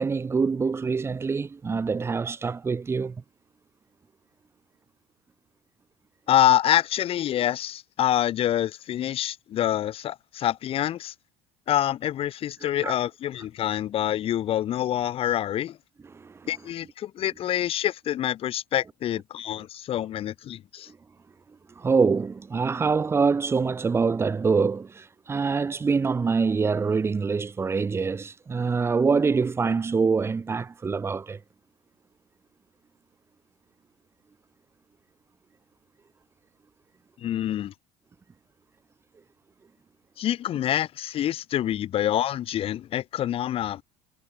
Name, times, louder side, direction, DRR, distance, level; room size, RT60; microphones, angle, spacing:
voice 1, 0.0-3.2 12.6-12.9 16.1-16.4 20.9-21.0 21.8-31.4, right 5 dB, 15° right, 4.7 m, -25 dB
voice 2, 6.3-11.1 11.7-15.8 16.5-20.9 37.2-37.7 40.2-43.8, left 11 dB, 35° left, 3.8 m, -26 dB
cardioid pair, 175°, 17 cm